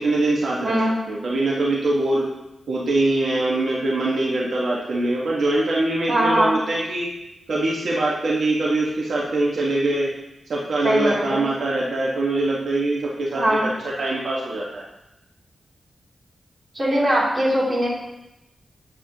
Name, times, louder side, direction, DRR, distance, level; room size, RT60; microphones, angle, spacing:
voice 1, 0.0-0.8 1.1-2.2 2.7-7.1 7.5-10.1 10.5-13.6 13.8-14.8, right 2 dB, 80° right, -4 dB, 1.5 m, -23 dB
voice 2, 0.6-1.0 6.1-6.6 10.8-11.4 13.3-13.7 16.7-17.9, right 1 dB, 30° right, -6 dB, 3.1 m, -20 dB
10.0 x 7.3 x 3.0 m, 0.91 s
wide cardioid pair, 100°, 0 cm